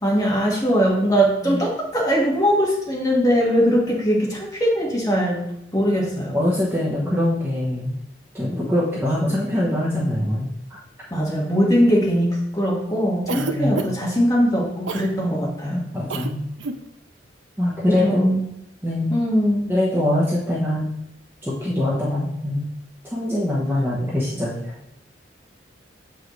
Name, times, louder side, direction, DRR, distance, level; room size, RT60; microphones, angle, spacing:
voice 1, 0.0-5.4 5.7-6.4 11.1-15.8 18.0-18.4 19.1-19.7, equal, 15° left, -4 dB, 1.6 m, -20 dB
voice 2, 6.2-7.9 8.3-10.8 13.4-13.8 15.7-16.4 17.6-18.3 18.8-19.1 19.7-20.9 21.4-22.7 23.1-24.8, left 1 dB, 10° right, -6 dB, 1.0 m, -23 dB
Cough, 13.3-14.1 14.9-15.1 16.1-16.3 16.6-16.8, right 4 dB, 65° right, 0.5 m, -28 dB
7.5 x 5.1 x 3.2 m, 0.81 s
head